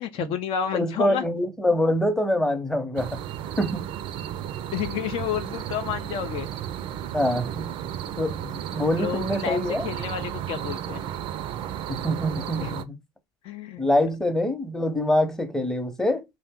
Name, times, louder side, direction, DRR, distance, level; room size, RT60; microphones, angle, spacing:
voice 1, 0.0-1.2 4.7-6.5 9.0-11.0 12.6-12.8 13.4-13.9, left 9 dB, 55° left, 0.4 m, -30 dB
voice 2, 0.7-3.2 3.6-3.9 7.1-7.7 8.2-9.8 11.9-13.0 13.8-16.2, left 1 dB, 5° left, 0.7 m, -25 dB
sound 1, 3.0-12.8, right 10 dB, 50° right, 0.4 m, -33 dB
2.6 x 2.0 x 3.5 m
hypercardioid pair, 85°, 11 cm